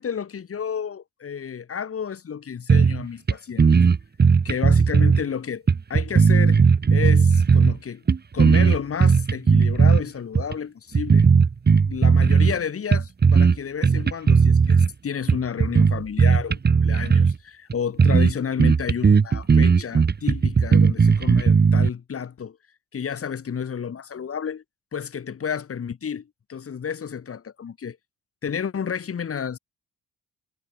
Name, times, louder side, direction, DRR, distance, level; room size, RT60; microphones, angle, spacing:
voice 1, 0.0-3.7 4.4-5.6 5.9-6.6 6.9-8.0 8.3-11.2 11.8-22.6 22.9-24.6 24.9-28.0 28.4-29.6, left 7 dB, 50° left, 6.9 m, -31 dB
sound 1, 2.7-3.0 3.3-3.4 3.6-5.2 5.7-7.8 8.1-10.0 10.4-10.5 10.9-12.6 12.9-13.6 13.8-14.9 15.3-17.4 17.7-17.8 18.0-18.3 18.6-21.9, right 5 dB, 35° right, 2.3 m, -17 dB
cardioid pair, 90°, 30 cm